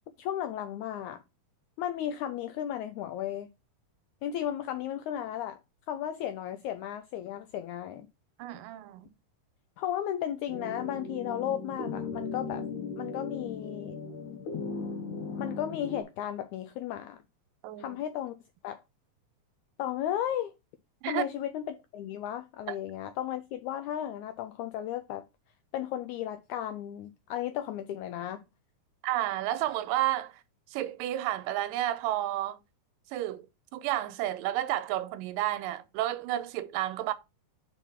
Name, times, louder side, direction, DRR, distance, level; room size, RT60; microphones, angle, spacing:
voice 1, 0.2-1.2 1.8-3.5 4.2-5.6 5.9-8.1 9.8-12.6 12.9-14.0 15.4-17.2 17.8-18.4 18.6-18.8 19.8-20.5 21.1-25.3 25.7-28.4, left 11 dB, 90° left, 1.7 m, -34 dB
voice 2, 8.4-9.1 17.6-18.0 21.0-21.2 22.7-22.8 29.0-30.4 30.7-32.6 33.1-33.5 33.7-37.1, right 13 dB, 85° right, 2.2 m, -31 dB
sound 1, 10.5-16.0, left 4 dB, 70° left, 2.4 m, -37 dB
5.3 x 4.5 x 5.7 m
omnidirectional pair, 3.9 m